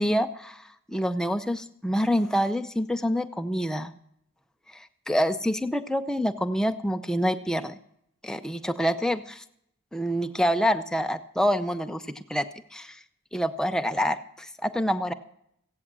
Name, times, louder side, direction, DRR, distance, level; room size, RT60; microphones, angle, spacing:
voice 1, 0.0-3.9 4.7-7.8 8.2-9.4 9.9-13.0 13.3-15.1, equal, 5° left, 8 dB, 0.5 m, -27 dB
16.0 x 8.6 x 7.4 m, 0.75 s
head